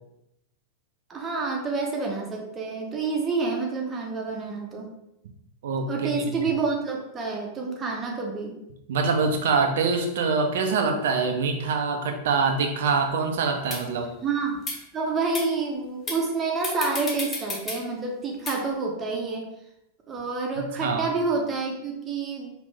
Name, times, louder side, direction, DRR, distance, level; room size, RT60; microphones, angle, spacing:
voice 1, 1.1-4.9 5.9-8.6 14.2-14.6 14.9-19.5 20.1-22.7, right 4 dB, 20° right, 0 dB, 1.0 m, -28 dB
voice 2, 5.6-6.1 8.9-14.1 20.8-21.1, right 4 dB, 60° right, 4 dB, 0.7 m, -24 dB
sound 1, 13.1-13.2 13.7-13.8 14.6-14.8 15.3-15.5 16.1-16.2 16.6-17.8 18.5-18.6, left 3 dB, 20° left, 1.0 m, -31 dB
5.1 x 3.0 x 3.4 m, 0.84 s
figure-of-eight pair, 90°, 0 cm